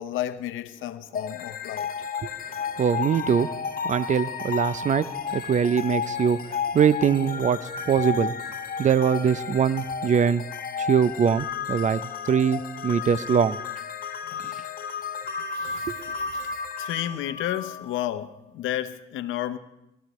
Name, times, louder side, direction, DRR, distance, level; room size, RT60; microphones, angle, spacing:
voice 1, 0.0-1.9 14.3-14.4 15.5-19.6, left 12 dB, 85° left, 0.8 m, -32 dB
sound 1, 1.1-18.3, left 6 dB, 45° left, 1.0 m, -33 dB
voice 2, 2.8-3.5 3.8-8.3 8.8-10.4 10.8-12.0 12.3-13.6 14.4-14.5 15.9-16.0, right 7 dB, 40° right, 0.5 m, -23 dB
19.0 x 13.5 x 3.1 m
cardioid pair, 90°, 20 cm